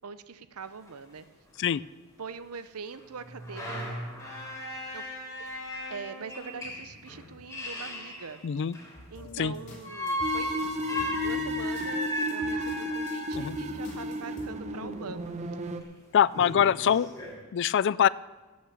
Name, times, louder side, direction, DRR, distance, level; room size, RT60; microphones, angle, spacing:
voice 1, 0.0-1.2 2.2-3.7 4.9-5.1 5.9-8.4 9.1-15.2, right 5 dB, 80° right, 12 dB, 0.7 m, -42 dB
sound 1, 0.6-0.7 0.9-1.0 1.6-1.7 2.9-9.1 9.8-13.5 15.2-15.3 15.8-15.9 16.2-17.3, equal, 15° left, 3.5 m, -36 dB
voice 2, 8.4-8.8 9.4-9.5 13.3-13.6 16.1-17.1 17.5-18.1, left 8 dB, 55° left, 20 dB, 0.3 m, -23 dB
sound 2, 8.9-14.5, left 1 dB, 35° left, 3.5 m, -46 dB
sound 3, 10.2-15.8, left 1 dB, 30° right, 1.0 m, -33 dB
18.0 x 6.4 x 7.1 m, 1.2 s
head